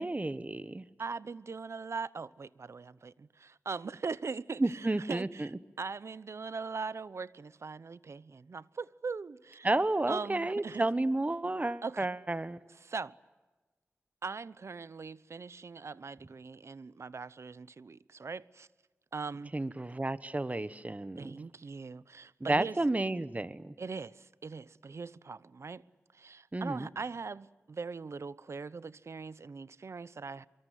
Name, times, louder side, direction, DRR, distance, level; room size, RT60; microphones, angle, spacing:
voice 1, 0.0-0.8 4.6-5.5 9.6-12.6 19.5-21.4 22.5-23.7 26.5-26.9, right 2 dB, 30° right, 1.3 m, -31 dB
voice 2, 1.0-5.5 5.8-9.7 10.1-10.9 11.8-12.1 12.8-13.1 14.2-18.7 19.1-19.7 21.2-22.8 23.8-25.8 26.1-30.5, right 4 dB, 65° right, 0.8 m, -41 dB
24.5 x 24.0 x 9.3 m
cardioid pair, 55°, 5 cm